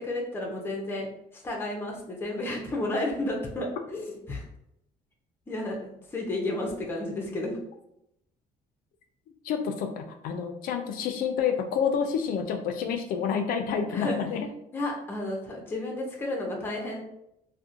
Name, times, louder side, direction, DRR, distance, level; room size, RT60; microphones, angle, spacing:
voice 1, 0.0-4.4 5.5-7.6 13.9-14.2 14.7-17.0, left 1 dB, 15° left, -1 dB, 0.5 m, -32 dB
voice 2, 9.4-14.5, left 7 dB, 75° left, 6 dB, 0.4 m, -28 dB
2.7 x 2.1 x 2.4 m, 0.80 s
cardioid pair, 140°, 15 cm